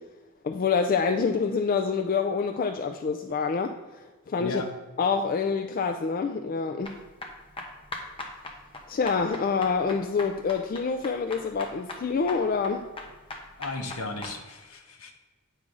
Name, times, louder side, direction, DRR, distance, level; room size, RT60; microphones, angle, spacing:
voice 1, 0.4-3.7 4.3-4.6 5.0-7.0 8.9-12.9, left 5 dB, 40° left, 6 dB, 0.3 m, -26 dB
voice 2, 4.4-4.7 13.6-15.1, left 2 dB, 70° left, 5 dB, 1.0 m, -35 dB
sound 1, 6.8-14.4, left 2 dB, 25° left, 0.9 m, -40 dB
8.7 x 3.8 x 6.1 m, 1.2 s
head